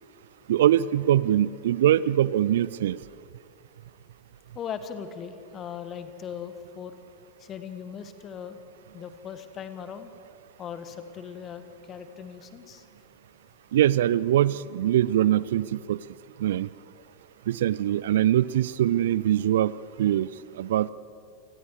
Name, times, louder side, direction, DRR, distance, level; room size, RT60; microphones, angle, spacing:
voice 1, 0.5-3.0 13.7-16.0 16.4-16.7 17.5-20.3 20.6-20.9, right 12 dB, 60° right, 20 dB, 0.4 m, -23 dB
voice 2, 4.5-6.9 7.4-8.6 8.9-10.1 10.6-12.8, left 7 dB, 30° left, 10 dB, 1.6 m, -39 dB
28.5 x 20.5 x 4.8 m, 2.3 s
figure-of-eight pair, 90°, 0 cm